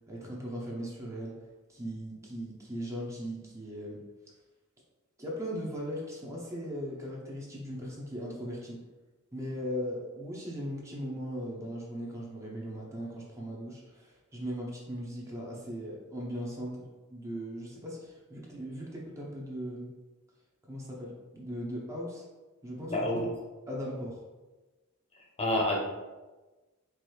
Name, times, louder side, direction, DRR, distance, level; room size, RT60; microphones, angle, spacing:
voice 1, 0.1-1.4 1.7-4.0 5.2-8.8 9.3-19.9 20.6-22.3 22.6-23.1 23.7-24.2, equal, 15° right, -4 dB, 0.7 m, -38 dB
voice 2, 22.9-23.3 25.4-25.8, left 1 dB, 30° left, -2 dB, 0.8 m, -27 dB
4.6 x 2.5 x 3.1 m, 1.2 s
head